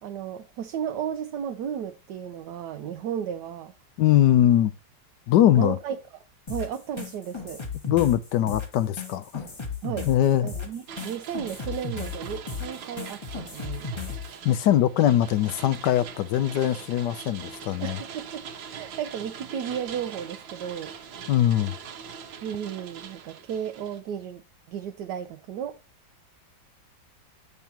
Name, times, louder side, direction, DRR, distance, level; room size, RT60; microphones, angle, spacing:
voice 1, 0.0-3.7 5.5-6.0 6.5-7.6 9.8-10.1 10.4-13.9 17.8-18.4 18.7-20.9 22.4-24.4 24.7-25.8, right 8 dB, 70° right, 1.2 m, -34 dB
voice 2, 4.0-4.7 5.3-5.8 7.9-9.4 10.1-10.5 14.4-18.0 21.3-21.7, left 12 dB, 75° left, 1.2 m, -21 dB
sound 1, 6.5-14.3, left 5 dB, 15° left, 1.2 m, -35 dB
sound 2, 10.9-24.0, right 7 dB, 85° right, 1.8 m, -42 dB
8.6 x 6.9 x 2.9 m
omnidirectional pair, 2.0 m